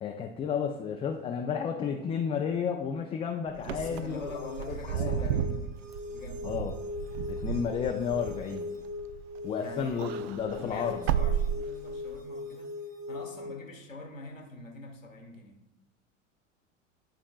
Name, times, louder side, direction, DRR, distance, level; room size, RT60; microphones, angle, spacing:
voice 1, 0.0-5.3 6.4-6.7 7.3-8.7 9.4-11.1, left 7 dB, 15° left, 3 dB, 0.3 m, -32 dB
voice 2, 3.6-5.7 6.1-6.5 9.6-10.1 10.5-12.7 13.1-15.6, left 2 dB, 90° left, 1 dB, 1.5 m, -44 dB
Wind / Car, 3.6-9.4 9.7-12.2, right 9 dB, 55° right, 0.5 m, -33 dB
sound 1, 3.6-13.6, left 3 dB, 75° right, 1.4 m, -40 dB
11.5 x 4.3 x 2.4 m, 0.95 s
figure-of-eight pair, 80°, 38 cm